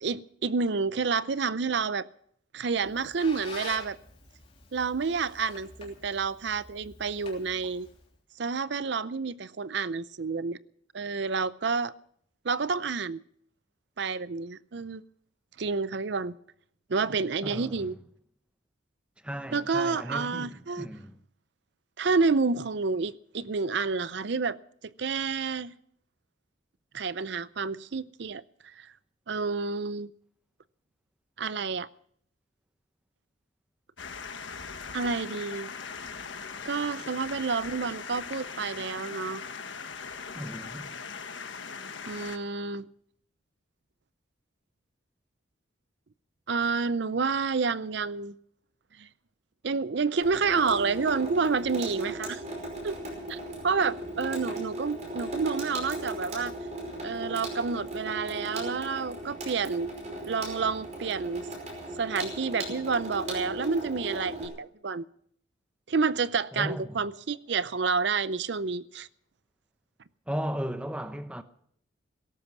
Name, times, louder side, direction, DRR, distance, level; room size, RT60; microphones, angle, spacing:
voice 1, 0.0-2.1 2.5-4.0 4.7-7.9 8.4-10.6 10.9-11.9 12.4-13.2 14.0-15.0 15.6-16.4 16.9-18.0 19.5-20.9 22.0-24.6 25.0-25.7 26.9-28.4 28.8-28.9 29.3-30.1 31.4-31.9 34.9-35.7 36.6-39.4 42.1-42.9 46.5-48.3 49.0-49.1 49.6-52.4 52.8-53.0 53.3-53.4 53.6-56.5 57.0-59.9 60.3-61.5 62.0-65.0 65.9-69.1, right 4 dB, 60° right, 0.5 m, -29 dB
Squeak, 2.7-8.2, left 3 dB, 30° left, 3.2 m, -47 dB
voice 2, 17.4-17.9 19.2-21.2 40.3-41.0 66.5-67.0 70.3-71.4, equal, 5° right, 0.8 m, -36 dB
sound 1, 34.0-42.4, left 5 dB, 70° left, 1.3 m, -40 dB
Water tap faucet / Sink (filling or washing), 50.2-64.4, right 1 dB, 35° right, 5.2 m, -37 dB
17.5 x 13.5 x 6.0 m
head